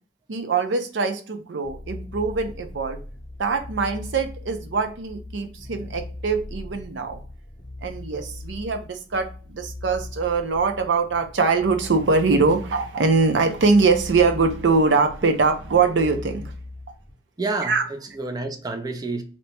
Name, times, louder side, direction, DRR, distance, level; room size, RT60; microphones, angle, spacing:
voice 1, 0.3-3.0 3.4-7.2 7.8-16.5 17.6-17.9, right 4 dB, 90° right, 0.5 m, -22 dB
sound 1, 1.6-17.1, left 2 dB, 25° left, 0.7 m, -39 dB
voice 2, 17.4-19.2, right 3 dB, 20° right, 0.4 m, -29 dB
2.9 x 2.2 x 4.0 m
head